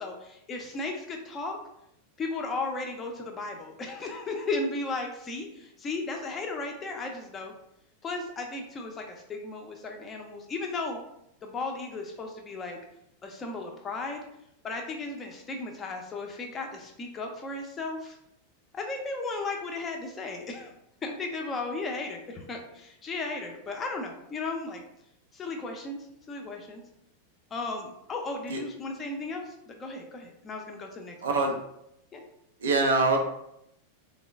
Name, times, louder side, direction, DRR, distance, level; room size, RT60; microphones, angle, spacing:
voice 1, 0.0-1.6 2.2-7.5 8.0-11.0 11.4-12.8 13.2-14.2 14.6-18.2 18.7-20.7 21.0-24.8 25.3-26.8 27.5-31.2 32.1-32.2, left 3 dB, 20° left, 2 dB, 0.6 m, -35 dB
voice 2, 31.2-31.5 32.6-33.2, right 3 dB, 65° right, 2 dB, 0.5 m, -23 dB
3.7 x 2.0 x 3.3 m, 0.79 s
figure-of-eight pair, 90°, 0 cm